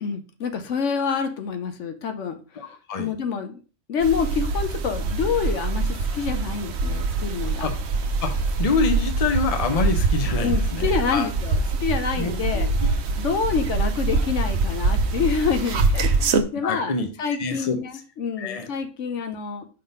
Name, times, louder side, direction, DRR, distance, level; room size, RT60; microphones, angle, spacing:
voice 1, 0.0-2.4 3.0-3.6 3.9-7.7 10.4-12.7 13.2-16.9 17.2-19.7, left 6 dB, 75° left, 8 dB, 1.1 m, -27 dB
voice 2, 2.6-3.1 7.6-7.7 8.2-11.3 12.2-12.9 16.6-17.1 17.4-17.8 18.4-18.7, left 4 dB, 35° left, 6 dB, 0.8 m, -26 dB
sound 1, 4.0-16.4, right 3 dB, 65° right, 0.9 m, -24 dB
5.5 x 3.8 x 5.2 m, 0.35 s
omnidirectional pair, 1.3 m